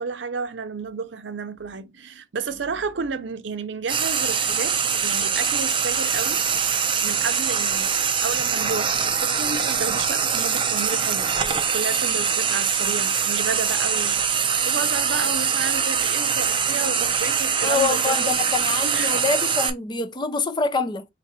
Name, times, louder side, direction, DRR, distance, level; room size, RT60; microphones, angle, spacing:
voice 1, 0.0-4.8 5.0-6.4 7.0-11.3 11.7-18.3 18.9-19.2, right 5 dB, 75° right, 0.6 m, -31 dB
Frying (food), 3.9-19.7, right 6 dB, 25° right, 0.5 m, -23 dB
voice 2, 17.6-21.1, left 4 dB, 25° left, 0.5 m, -25 dB
3.9 x 2.5 x 4.2 m
head